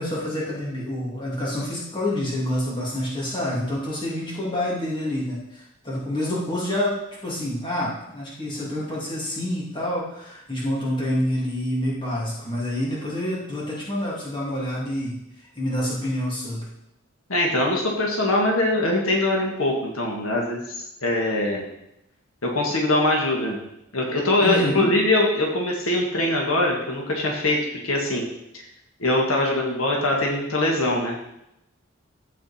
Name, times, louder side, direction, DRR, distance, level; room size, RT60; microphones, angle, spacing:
voice 1, 0.0-7.0 7.2-15.2 15.5-16.7 24.4-24.9, left 1 dB, 25° left, -6 dB, 2.7 m, -27 dB
voice 2, 17.3-21.6 22.4-23.6 23.9-27.6 27.8-28.2 28.5-28.6 29.0-31.3, left 1 dB, 90° left, -1 dB, 1.8 m, -22 dB
15.0 x 5.0 x 4.4 m, 0.83 s
head